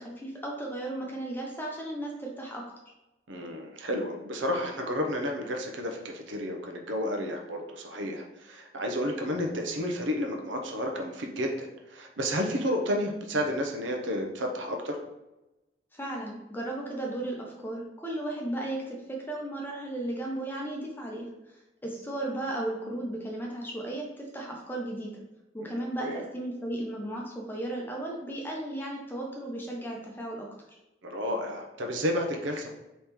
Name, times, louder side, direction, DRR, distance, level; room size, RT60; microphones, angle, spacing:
voice 1, 0.0-2.7 15.9-25.2 25.5-30.5, right 1 dB, 10° left, -1 dB, 0.7 m, -35 dB
voice 2, 3.3-15.0 26.0-26.2 31.0-32.7, equal, 85° right, 2 dB, 0.8 m, -31 dB
3.6 x 3.1 x 4.2 m, 0.96 s
head